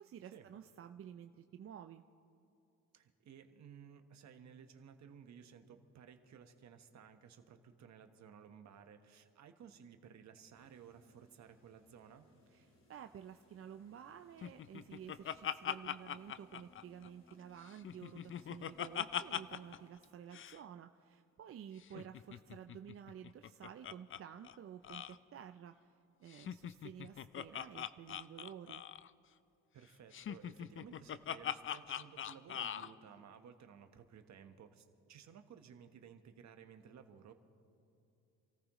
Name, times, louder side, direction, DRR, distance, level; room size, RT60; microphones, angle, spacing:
voice 1, 0.0-2.0 12.5-25.9 26.2-28.8, right 9 dB, 45° right, 7 dB, 0.5 m, -52 dB
voice 2, 2.9-12.3 21.9-22.2 29.7-37.3, right 7 dB, 65° right, 7 dB, 1.3 m, -57 dB
sound 1, 10.5-19.9, left 1 dB, 65° left, 2.5 m, -68 dB
Laughter, 14.4-17.3 17.7-19.8 20.0-20.1 20.3-20.6 21.8-24.2 24.4-24.6 24.8-25.2 26.3-29.1 30.1-32.9, left 9 dB, 45° left, 0.5 m, -42 dB
27.0 x 14.5 x 3.1 m, 2.8 s
cardioid pair, 90°, 30 cm